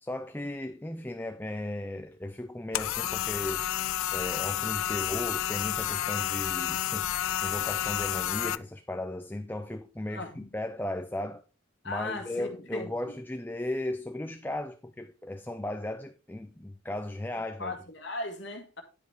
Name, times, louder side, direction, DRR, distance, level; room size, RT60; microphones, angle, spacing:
voice 1, 0.0-3.6 4.1-11.4 11.8-17.8, left 1 dB, 10° left, 0.4 m, -36 dB
sound 1, 2.7-8.5, left 12 dB, 80° left, 0.4 m, -30 dB
voice 2, 10.1-10.5 11.8-13.1 17.6-18.8, left 2 dB, 60° left, 1.8 m, -37 dB
10.5 x 5.0 x 4.7 m
head